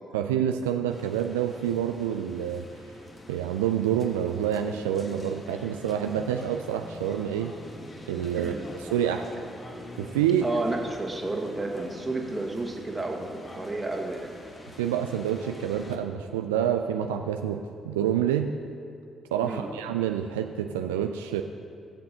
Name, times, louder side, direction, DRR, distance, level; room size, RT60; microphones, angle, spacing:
voice 1, 0.1-2.7 3.3-7.5 8.1-9.3 10.0-10.4 14.8-18.6 19.3-21.4, right 9 dB, 80° right, 5 dB, 0.3 m, -27 dB
sound 1, 0.9-16.0, left 1 dB, 35° left, 1.4 m, -44 dB
voice 2, 10.4-13.2 13.5-14.3 19.4-19.7, right 2 dB, 25° right, 1 dB, 1.7 m, -31 dB
19.0 x 7.5 x 2.9 m, 2.4 s
hypercardioid pair, 45°, 0 cm